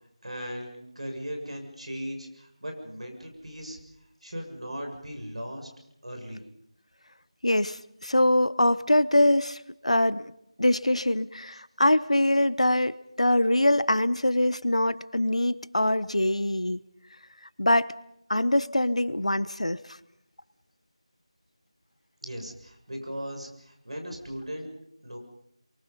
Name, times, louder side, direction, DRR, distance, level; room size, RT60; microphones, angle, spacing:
voice 1, 0.2-3.8 4.2-5.7 6.0-6.4 22.2-24.7 25.0-25.2, equal, 75° right, 3 dB, 6.8 m, -38 dB
voice 2, 7.4-10.3 10.6-16.8 17.6-17.9 18.3-19.8, left 1 dB, 85° left, 17 dB, 1.0 m, -23 dB
29.5 x 23.5 x 5.5 m, 0.77 s
figure-of-eight pair, 165°, 3 cm